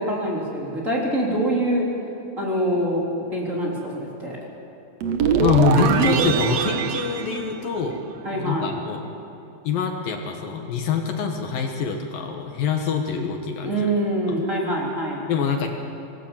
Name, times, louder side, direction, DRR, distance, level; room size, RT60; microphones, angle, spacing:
voice 1, 0.0-1.9 2.4-3.0 3.3-4.4 8.2-8.8 13.6-15.2, right 1 dB, 20° right, -4 dB, 3.6 m, -25 dB
sound 1, 5.0-8.3, right 7 dB, 75° right, 1.6 m, -22 dB
voice 2, 5.4-8.0 8.3-9.0 9.6-13.9 14.3-14.4 15.3-15.7, left 6 dB, 70° left, 3 dB, 2.9 m, -25 dB
25.5 x 19.0 x 7.4 m, 2.9 s
omnidirectional pair, 4.5 m